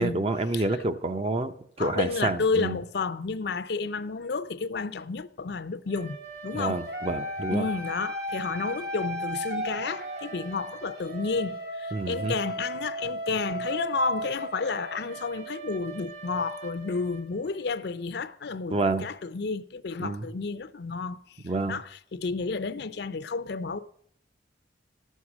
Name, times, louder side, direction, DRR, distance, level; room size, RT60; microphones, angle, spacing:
voice 1, 0.0-1.5 1.8-2.8 6.5-7.7 11.9-12.3 18.7-19.1 20.0-20.3 21.4-21.8, right 2 dB, 30° right, 0.5 m, -28 dB
voice 2, 1.8-6.2 6.4-6.8 7.5-21.4 21.7-23.8, left 4 dB, 60° left, 0.5 m, -31 dB
sound 1, 5.9-17.7, equal, 55° right, 2.0 m, -36 dB
13.5 x 6.4 x 7.2 m
head